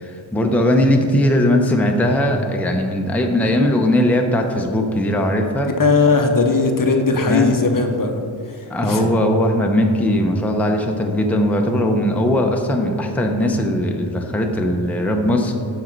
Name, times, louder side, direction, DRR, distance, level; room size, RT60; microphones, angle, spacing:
voice 1, 0.0-5.7 7.3-7.5 8.7-15.5, left 1 dB, 5° left, 2 dB, 0.6 m, -19 dB
voice 2, 5.6-8.2 8.5-9.1, left 4 dB, 45° left, 5 dB, 0.7 m, -18 dB
6.4 x 6.2 x 4.4 m, 2.4 s
wide cardioid pair, 90°, 46 cm